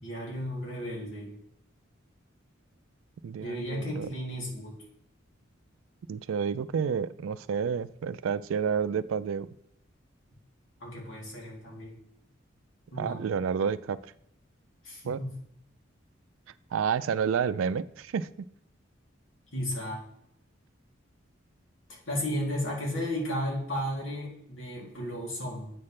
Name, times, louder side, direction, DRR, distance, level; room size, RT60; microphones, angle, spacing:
voice 1, 0.0-1.3 3.4-4.7 10.8-12.0 12.9-13.2 14.8-15.3 19.5-20.0 21.9-25.7, equal, 85° left, -3 dB, 2.7 m, -34 dB
voice 2, 3.2-4.1 6.1-9.5 13.0-14.0 15.1-15.2 16.7-18.5, right 6 dB, 85° right, 15 dB, 0.4 m, -30 dB
8.6 x 3.2 x 5.7 m, 0.75 s
head